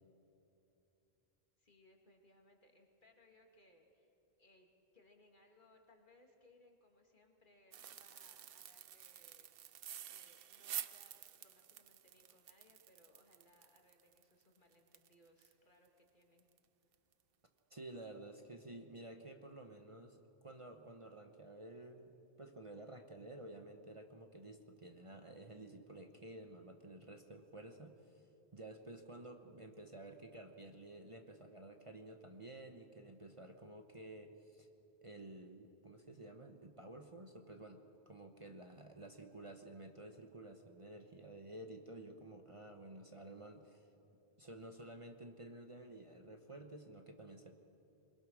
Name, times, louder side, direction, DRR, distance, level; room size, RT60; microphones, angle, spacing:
voice 1, 1.6-4.1 4.4-9.5 10.1-16.5, left 1 dB, 50° left, 2 dB, 2.2 m, -68 dB
sound 1, 7.7-15.5 15.8-15.9 16.4-16.6 16.9-17.1, right 10 dB, 65° right, 0.8 m, -50 dB
voice 2, 17.7-22.1 22.4-28.2 28.5-34.7 35.0-43.9 44.4-47.6, right 2 dB, 30° right, 4 dB, 1.1 m, -52 dB
23.0 x 21.5 x 6.3 m, 2.9 s
omnidirectional pair, 1.1 m